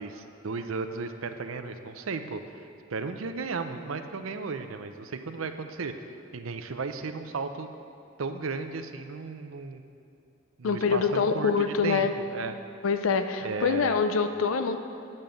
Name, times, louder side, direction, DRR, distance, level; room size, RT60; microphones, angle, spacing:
voice 1, 0.0-2.4 2.9-5.9 6.3-7.7 8.2-9.8 10.6-12.5 13.4-14.0, right 4 dB, 85° right, 8 dB, 0.6 m, -35 dB
voice 2, 10.6-12.1 12.8-14.8, left 5 dB, 90° left, 8 dB, 0.5 m, -25 dB
8.9 x 5.4 x 7.7 m, 2.6 s
head